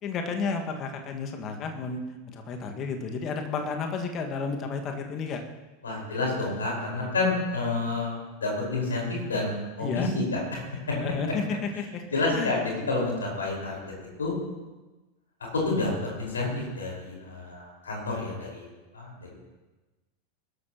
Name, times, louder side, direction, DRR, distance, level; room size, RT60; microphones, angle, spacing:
voice 1, 0.0-5.4 9.8-10.1 10.9-12.0 12.3-12.5, left 5 dB, 35° left, 4 dB, 1.8 m, -32 dB
voice 2, 5.8-10.9 11.7-11.8 12.1-13.8 14.2-14.3 15.5-18.7 18.9-19.1, left 3 dB, 70° left, -2 dB, 4.9 m, -29 dB
22.0 x 12.5 x 3.0 m, 1.2 s
figure-of-eight pair, 85°, 0 cm